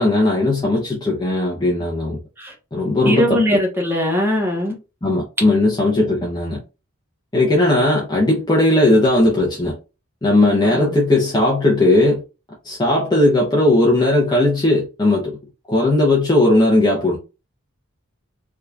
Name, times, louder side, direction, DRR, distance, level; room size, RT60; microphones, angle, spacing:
voice 1, 0.0-2.2 2.7-3.6 5.0-6.6 7.3-9.8 10.2-12.2 12.6-15.4 15.7-17.2, left 2 dB, 20° left, 0.8 m, -17 dB
voice 2, 3.0-4.7 10.6-10.9, left 1 dB, 10° right, 1.1 m, -20 dB
3.5 x 2.9 x 2.4 m
head